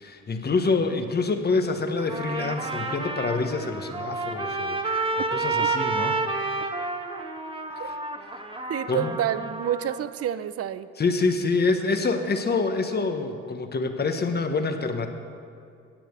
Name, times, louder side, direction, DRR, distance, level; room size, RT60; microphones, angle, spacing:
voice 1, 0.0-5.0 5.3-6.4 7.8-8.0 8.9-9.2 11.0-15.1, left 3 dB, 35° left, 7 dB, 1.1 m, -26 dB
Trumpet, 2.0-10.0, right 3 dB, 20° right, 1.1 m, -30 dB
voice 2, 8.7-10.9, right 10 dB, 50° right, 14 dB, 0.6 m, -28 dB
10.0 x 8.7 x 6.7 m, 2.4 s
cardioid pair, 90°, 30 cm